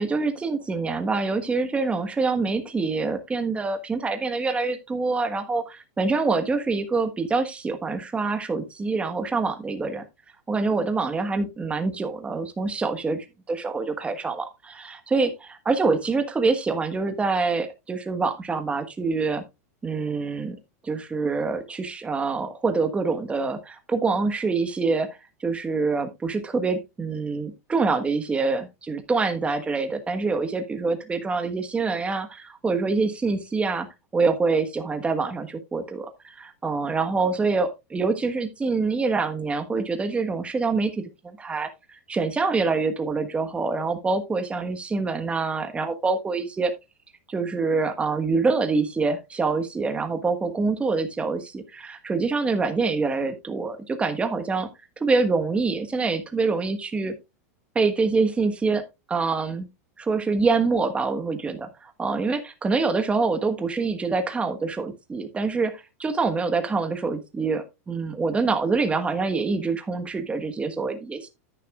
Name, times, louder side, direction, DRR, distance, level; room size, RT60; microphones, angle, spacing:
voice 1, 0.0-10.0 10.5-19.4 19.8-20.5 20.8-25.1 25.4-33.9 34.1-41.7 42.1-46.7 47.3-54.7 55.0-57.1 57.7-58.8 59.1-59.7 60.0-71.3, right 4 dB, 15° right, 1.4 m, -25 dB
10.0 x 9.4 x 2.4 m
supercardioid pair, 130°, 8 cm